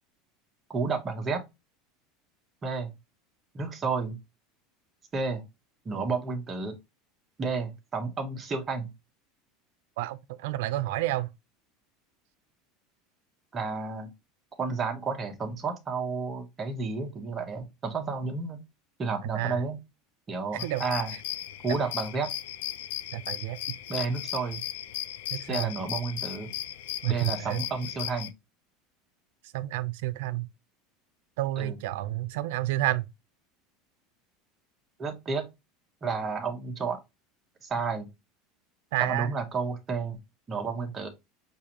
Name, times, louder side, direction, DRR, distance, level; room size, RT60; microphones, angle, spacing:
voice 1, 0.7-1.5 2.6-2.9 3.5-4.2 5.1-5.4 5.8-6.8 7.4-8.9 13.5-14.1 14.6-18.6 19.0-19.8 20.3-21.1 21.6-22.3 23.9-24.6 25.5-26.5 27.1-28.3 31.6-31.8 35.0-35.4 36.0-37.0 37.6-38.1 39.0-40.2 40.5-41.1, right 4 dB, 20° right, 0.9 m, -31 dB
voice 2, 10.0-11.3 19.2-19.6 20.6-20.8 23.1-23.6 25.3-25.7 27.0-27.6 29.5-30.5 31.4-33.1 38.9-39.4, right 15 dB, 75° right, 0.5 m, -30 dB
sound 1, 20.6-28.3, left 13 dB, 85° left, 0.5 m, -36 dB
6.6 x 2.5 x 2.9 m
supercardioid pair, 165°, 0 cm